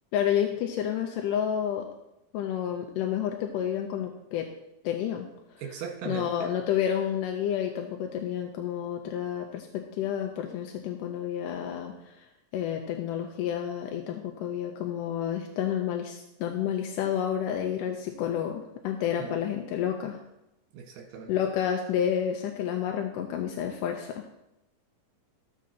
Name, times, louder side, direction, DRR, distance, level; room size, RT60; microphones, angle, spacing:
voice 1, 0.1-1.9 2.3-4.5 4.8-5.3 6.1-12.3 12.5-20.2 21.3-24.2, left 9 dB, 80° left, 3 dB, 2.1 m, -30 dB
voice 2, 5.6-6.5 19.2-19.4 20.7-21.3, right 7 dB, 80° right, 0 dB, 3.1 m, -38 dB
14.5 x 7.4 x 2.9 m, 0.89 s
omnidirectional pair, 4.1 m